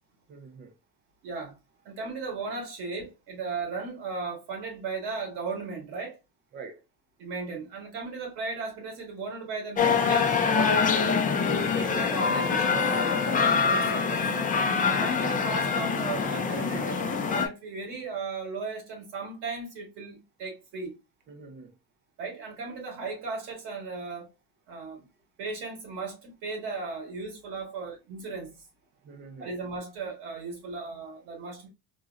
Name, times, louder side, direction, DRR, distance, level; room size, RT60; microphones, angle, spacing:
voice 1, 0.3-0.7 6.5-6.8 13.2-13.5 21.3-21.7 29.0-29.5, right 4 dB, 25° right, 0.5 m, -44 dB
voice 2, 1.2-1.6 1.8-6.2 7.2-11.1 11.5-13.0 13.4-14.3 15.0-17.0 17.3-20.9 22.2-24.3 24.7-25.1 25.4-28.5 29.4-31.7, right 4 dB, 85° right, 2.2 m, -36 dB
sound 1, 9.8-17.5, left 5 dB, 20° left, 0.4 m, -25 dB
3.8 x 3.0 x 2.4 m
cardioid pair, 150°, 38 cm